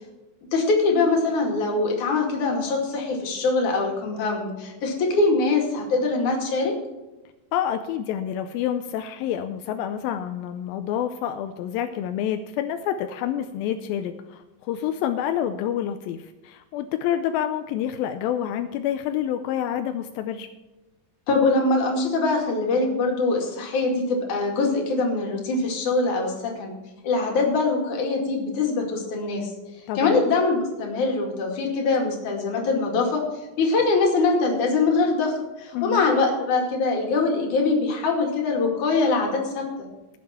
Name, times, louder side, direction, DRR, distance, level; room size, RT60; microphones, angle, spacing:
voice 1, 0.5-6.7 21.3-26.7 27.0-29.5 30.0-33.2 33.6-39.7, left 3 dB, 60° left, 1 dB, 3.5 m, -23 dB
voice 2, 7.5-20.5 29.9-30.2 35.7-36.0, left 10 dB, 85° left, 8 dB, 2.4 m, -28 dB
18.0 x 7.5 x 4.3 m, 1.1 s
omnidirectional pair, 4.1 m